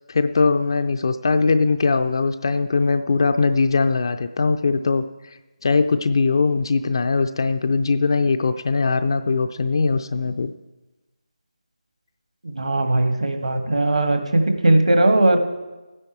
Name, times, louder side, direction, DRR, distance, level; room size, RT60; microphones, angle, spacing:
voice 1, 0.1-10.5, left 4 dB, 40° left, 8 dB, 0.5 m, -21 dB
voice 2, 12.4-15.4, right 2 dB, 60° right, 6 dB, 1.6 m, -18 dB
15.5 x 9.8 x 4.6 m, 1.1 s
figure-of-eight pair, 155°, 4 cm